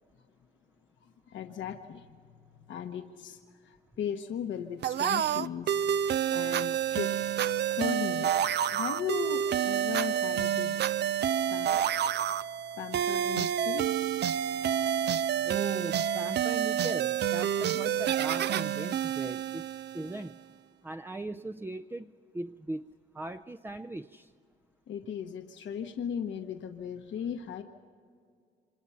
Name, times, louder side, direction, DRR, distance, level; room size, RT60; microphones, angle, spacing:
voice 1, 1.0-2.1 2.6-7.2 7.7-11.1 11.5-11.8 12.3-12.5 12.8-13.9 17.7-17.8 24.9-27.6, left 8 dB, 70° left, 4 dB, 1.2 m, -37 dB
sound 1, 4.8-20.3, right 10 dB, 60° right, 0.5 m, -29 dB
voice 2, 15.4-19.7 19.9-20.4 20.8-24.3, right 2 dB, 10° right, 8 dB, 0.5 m, -39 dB
27.5 x 26.0 x 5.7 m, 2.2 s
cardioid pair, 90°, 20 cm